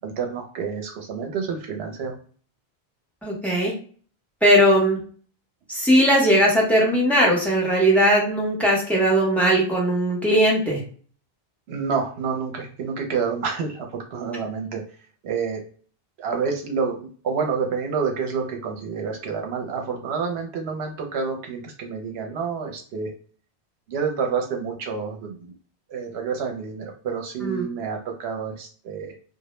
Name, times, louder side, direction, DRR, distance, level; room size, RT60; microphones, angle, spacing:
voice 1, 0.0-2.1 11.7-14.8 15.2-15.6 16.2-23.1 23.9-25.5 25.9-29.1, right 5 dB, 80° right, 2 dB, 0.8 m, -28 dB
voice 2, 3.2-3.7 4.4-5.0 5.7-10.8 27.4-27.6, equal, ahead, -4 dB, 0.6 m, -19 dB
2.1 x 2.0 x 3.0 m, 0.43 s
omnidirectional pair, 1.1 m